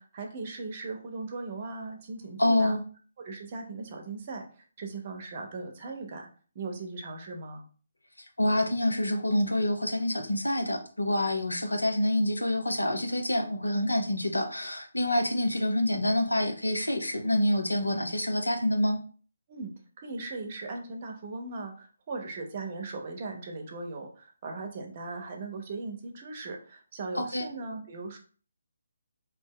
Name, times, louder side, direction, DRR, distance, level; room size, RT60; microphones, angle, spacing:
voice 1, 0.0-2.8 3.2-6.3 6.5-7.7 19.5-19.7 20.0-28.2, right 3 dB, 40° right, 2 dB, 0.7 m, -38 dB
voice 2, 2.4-2.8 8.4-19.0 27.1-27.5, left 1 dB, 90° left, 5 dB, 0.6 m, -27 dB
2.8 x 2.0 x 3.7 m, 0.41 s
figure-of-eight pair, 145°, 0 cm